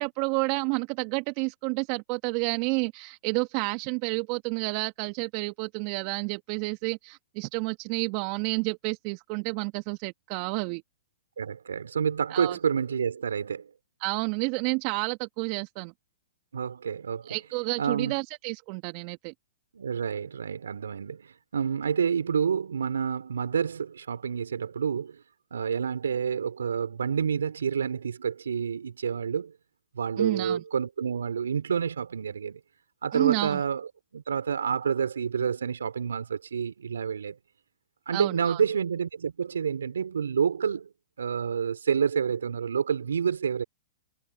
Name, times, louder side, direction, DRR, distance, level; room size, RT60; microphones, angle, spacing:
voice 1, 0.0-10.8 12.3-12.6 14.0-15.9 17.2-19.3 30.2-30.6 33.1-33.6 38.1-38.6, right 30 dB, 45° right, 1.8 m, -30 dB
voice 2, 11.4-13.7 16.5-17.4 17.8-18.2 19.7-25.2 25.5-29.5 29.9-32.6 33.0-37.4 38.1-40.9 41.2-43.6, right 7 dB, 80° right, 4.6 m, -28 dB
hypercardioid pair, 115°, 0 cm